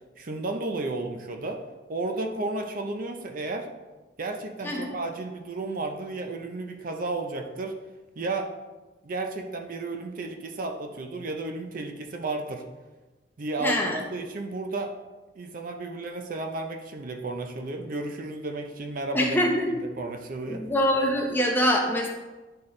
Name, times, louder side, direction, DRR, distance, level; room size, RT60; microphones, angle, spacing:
voice 1, 0.2-1.6 1.9-3.7 4.2-7.8 8.2-8.5 9.0-12.6 13.4-14.9 15.4-19.4 19.7-20.6, right 2 dB, 45° right, 4 dB, 0.5 m, -33 dB
voice 2, 4.6-5.0 13.6-14.0 19.1-19.7 20.5-22.1, equal, 10° left, 0 dB, 0.8 m, -24 dB
9.5 x 4.5 x 3.2 m, 1.2 s
head